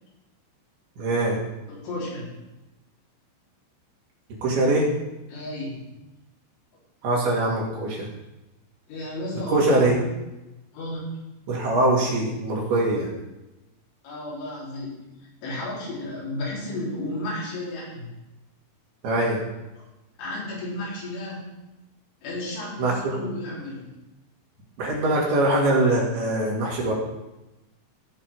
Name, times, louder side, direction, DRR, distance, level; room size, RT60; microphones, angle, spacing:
voice 1, 1.0-1.4 4.4-4.9 7.0-8.1 9.5-10.0 11.5-13.1 19.0-19.4 22.8-23.2 24.8-26.9, right 2 dB, 60° right, -3 dB, 4.0 m, -22 dB
voice 2, 1.8-2.3 5.3-5.8 8.9-10.0 10.7-11.2 14.0-15.0 15.4-18.1 19.8-19.9 20.2-21.4 22.2-23.9, left 1 dB, 90° left, -7 dB, 6.4 m, -33 dB
16.5 x 5.7 x 4.7 m, 0.99 s
omnidirectional pair, 5.3 m